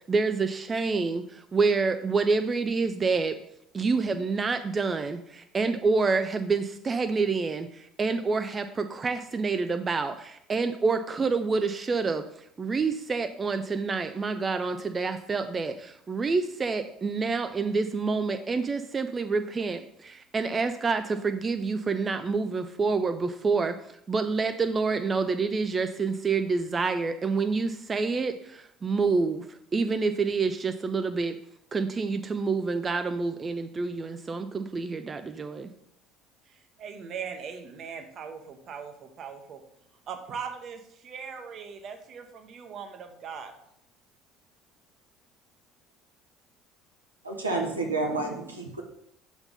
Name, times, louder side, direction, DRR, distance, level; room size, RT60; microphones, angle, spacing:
voice 1, 0.1-3.4 3.7-12.2 12.6-23.8 24.1-31.4 31.7-35.7, right 4 dB, 30° right, 8 dB, 0.4 m, -27 dB
voice 2, 36.5-39.6 40.1-43.5, right 6 dB, 45° right, 6 dB, 0.9 m, -40 dB
voice 3, 47.2-48.8, right 2 dB, 90° right, 1 dB, 0.9 m, -29 dB
5.7 x 4.1 x 5.3 m, 0.75 s
figure-of-eight pair, 60°, 0 cm